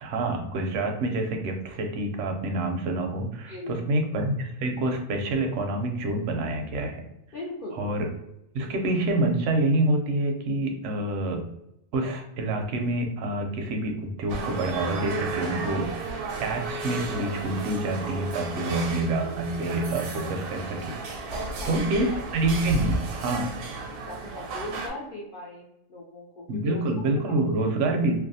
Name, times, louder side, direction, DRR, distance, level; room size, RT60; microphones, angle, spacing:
voice 1, 0.0-7.0 7.8-8.0 8.5-11.4 11.9-21.3 21.6-23.5 26.5-28.1, right 2 dB, 65° right, 4 dB, 0.8 m, -27 dB
voice 2, 3.4-3.7 7.3-7.9 21.3-21.8 22.1-22.2 24.1-26.8, left 1 dB, 80° left, -4 dB, 0.4 m, -38 dB
sound 1, 14.3-24.9, right 3 dB, 85° right, 1.1 m, -33 dB
2.6 x 2.1 x 2.6 m, 0.81 s
omnidirectional pair, 1.6 m